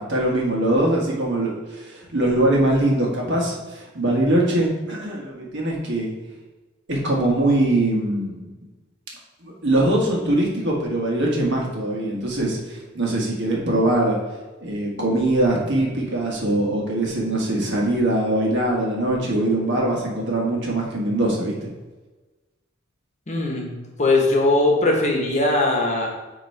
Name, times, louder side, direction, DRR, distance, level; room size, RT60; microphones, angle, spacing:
voice 1, 0.0-6.1 6.9-8.4 9.4-14.2 14.6-21.7, right 1 dB, 60° right, -2 dB, 1.4 m, -22 dB
voice 2, 23.3-23.7 24.0-26.1, left 2 dB, 35° left, 0 dB, 1.1 m, -20 dB
8.1 x 3.0 x 4.5 m, 1.2 s
head